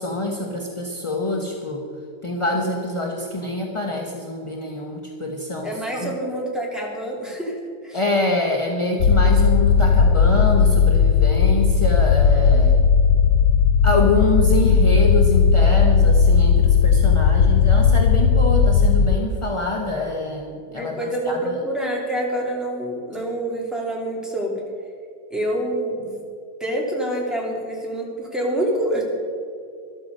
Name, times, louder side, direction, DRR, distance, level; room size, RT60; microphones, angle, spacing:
voice 1, 0.0-1.8 2.2-6.1 7.9-12.8 13.8-21.6, left 2 dB, 25° left, 0 dB, 0.7 m, -25 dB
voice 2, 5.6-7.6 7.8-8.0 20.7-24.6 25.3-26.1 26.6-29.0, right 1 dB, ahead, -3 dB, 2.8 m, -26 dB
sound 1, 9.0-19.2, left 6 dB, 75° left, 1.0 m, -16 dB
13.5 x 12.0 x 5.3 m, 2.4 s
omnidirectional pair, 1.8 m